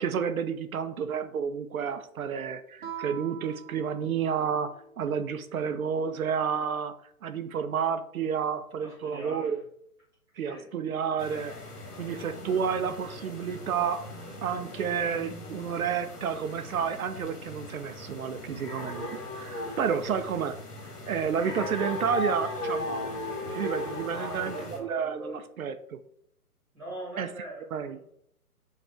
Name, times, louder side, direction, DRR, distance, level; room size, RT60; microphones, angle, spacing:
voice 1, 0.0-6.9 7.2-9.6 10.4-11.5 12.0-14.0 14.4-20.6 21.1-23.2 23.5-24.5 24.8-26.0 27.2-27.3 27.7-28.0, right 7 dB, 65° right, 9 dB, 0.5 m, -30 dB
Guitar, 2.8-5.2, right 9 dB, 40° right, 0.8 m, -44 dB
voice 2, 8.8-9.6 10.3-10.7 24.1-25.4 26.7-28.0, right 1 dB, 5° right, -7 dB, 1.2 m, -42 dB
sound 1, 11.2-24.8, left 2 dB, 75° left, 1.4 m, -38 dB
5.3 x 2.5 x 3.3 m, 0.70 s
figure-of-eight pair, 140°, 46 cm